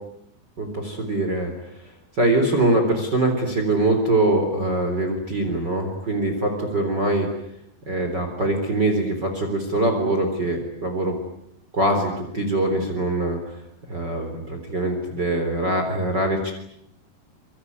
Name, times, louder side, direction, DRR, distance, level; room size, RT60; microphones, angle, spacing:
voice 1, 0.6-1.5 2.2-7.3 7.9-11.1 11.7-13.6 13.9-16.5, right 2 dB, 25° right, 4 dB, 4.1 m, -23 dB
26.0 x 24.0 x 9.6 m, 0.76 s
omnidirectional pair, 4.8 m